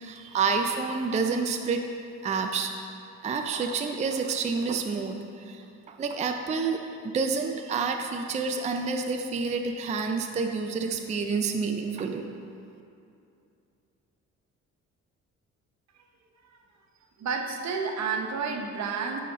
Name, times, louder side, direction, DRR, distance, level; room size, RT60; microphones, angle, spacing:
voice 1, 0.0-1.9 2.2-2.7 3.2-6.9 7.1-12.3, right 4 dB, 25° right, 4 dB, 0.4 m, -29 dB
voice 2, 17.2-19.2, right 5 dB, 65° right, 3 dB, 0.8 m, -30 dB
10.0 x 4.2 x 3.7 m, 2.6 s
cardioid pair, 90°, 30 cm